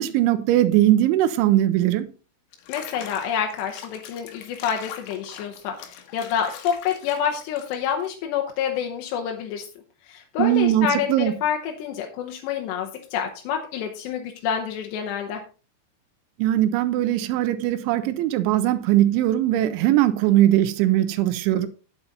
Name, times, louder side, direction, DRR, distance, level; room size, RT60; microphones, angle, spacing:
voice 1, 0.0-2.1 10.4-11.3 16.4-21.7, right 13 dB, 85° right, 3.1 m, -20 dB
Water / Bathtub (filling or washing), 2.5-8.0, left 9 dB, 90° left, 3.7 m, -42 dB
voice 2, 2.7-9.6 10.1-15.4, left 8 dB, 75° left, 3.0 m, -28 dB
9.4 x 7.9 x 4.1 m
omnidirectional pair, 5.4 m